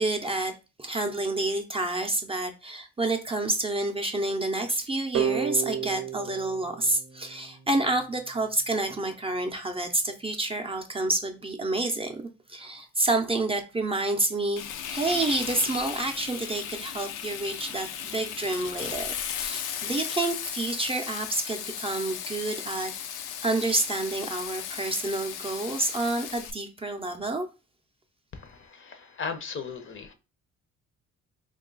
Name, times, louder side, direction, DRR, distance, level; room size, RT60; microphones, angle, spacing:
voice 1, 0.0-14.6 14.9-27.5, right 2 dB, 20° right, 0.5 m, -29 dB
sound 1, 5.1-7.9, right 9 dB, 75° right, 0.6 m, -32 dB
Frying (food), 14.6-26.5, left 9 dB, 90° left, 0.5 m, -36 dB
voice 2, 28.3-30.1, left 5 dB, 40° left, 0.6 m, -37 dB
2.9 x 2.3 x 3.8 m
cardioid pair, 90°, 30 cm